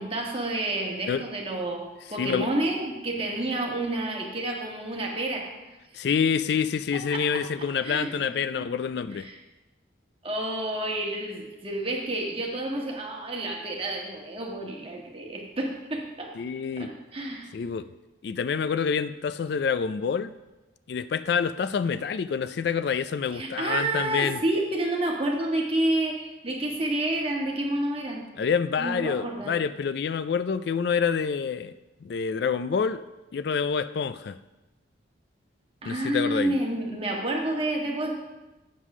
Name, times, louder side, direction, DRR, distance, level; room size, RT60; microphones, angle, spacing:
voice 1, 0.0-1.8 2.1-5.4 6.9-7.4 7.8-8.1 8.5-8.7 9.2-9.4 10.2-16.3 16.8-17.5 23.3-28.2 28.8-29.5 35.8-38.1, right 1 dB, 30° right, -1 dB, 1.5 m, -29 dB
voice 2, 2.2-2.5 5.9-9.3 16.4-16.9 17.5-17.9 18.2-20.3 20.9-24.4 28.4-31.7 32.0-33.0 33.3-34.4 35.9-36.5, left 6 dB, 55° left, 13 dB, 0.3 m, -27 dB
8.3 x 7.4 x 6.0 m, 1.1 s
head